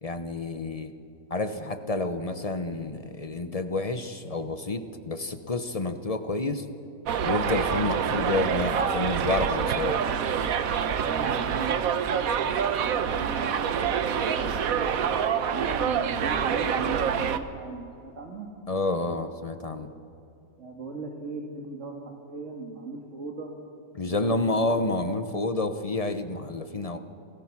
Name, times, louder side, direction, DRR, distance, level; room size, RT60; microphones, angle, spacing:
voice 1, 0.0-0.9 1.3-6.6 7.2-10.0 18.7-19.9 23.9-27.0, left 2 dB, 30° left, 9 dB, 0.7 m, -29 dB
Subway metro underground, 7.1-17.4, right 7 dB, 60° right, 1.2 m, -26 dB
voice 2, 11.0-14.9 15.5-18.5 20.6-23.5 24.0-25.1, right 4 dB, 45° right, 1 dB, 2.2 m, -38 dB
28.0 x 17.5 x 6.1 m, 2.5 s
omnidirectional pair, 1.8 m